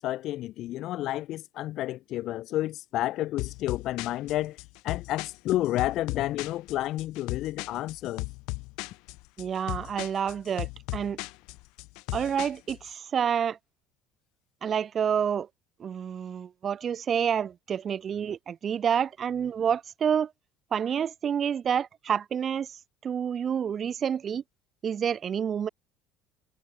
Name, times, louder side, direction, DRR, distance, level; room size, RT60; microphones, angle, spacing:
voice 1, 0.0-4.6 4.8-8.3, left 15 dB, 55° left, 1.8 m, -30 dB
sound 1, 3.4-12.9, left 26 dB, 75° left, 1.4 m, -37 dB
voice 2, 9.4-11.2 12.1-13.6 14.6-15.5 15.8-20.3 20.7-24.4 24.8-25.7, right 8 dB, 35° right, 2.3 m, -28 dB
cardioid pair, 130°, 0 cm